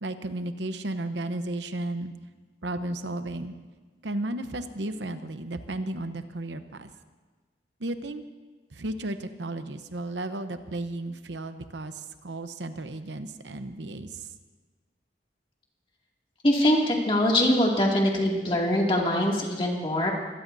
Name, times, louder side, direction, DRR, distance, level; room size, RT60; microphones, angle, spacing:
voice 1, 0.0-2.1 2.6-3.5 4.0-6.9 7.8-8.2 8.8-11.9 12.2-14.1, right 1 dB, 90° right, 9 dB, 0.9 m, -33 dB
voice 2, 16.4-20.1, left 1 dB, 30° left, -2 dB, 2.4 m, -23 dB
24.0 x 17.5 x 2.7 m, 1.3 s
head